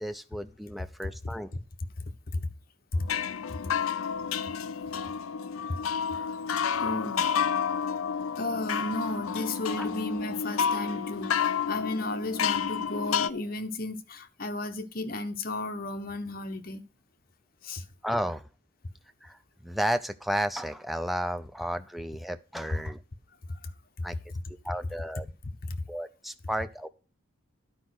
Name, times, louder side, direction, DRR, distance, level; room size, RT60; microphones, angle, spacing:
voice 1, 0.0-1.5 9.8-9.9 18.0-18.5 19.2-23.0 24.0-24.2 24.6-25.3 25.9-26.9, equal, ahead, 0.5 m, -33 dB
sound 1, 3.0-13.3, left 7 dB, 75° left, 0.5 m, -30 dB
voice 2, 6.7-7.4 8.4-16.8 17.6-17.8 23.5-23.7 25.4-25.8, left 2 dB, 45° left, 1.0 m, -34 dB
10.5 x 5.1 x 6.3 m
head